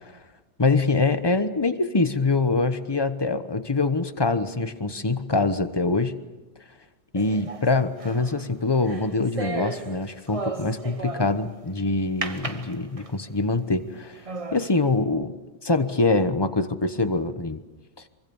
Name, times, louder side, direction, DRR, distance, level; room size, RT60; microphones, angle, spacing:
voice 1, 0.6-6.2 7.1-14.2 14.5-15.4 15.6-17.6, left 3 dB, 20° left, 10 dB, 0.8 m, -24 dB
sound 1, 7.2-11.5 12.2-13.3 13.8-13.9 14.3-14.7, right 3 dB, 25° right, 1.1 m, -35 dB
24.5 x 24.5 x 7.1 m, 1.2 s
omnidirectional pair, 1.7 m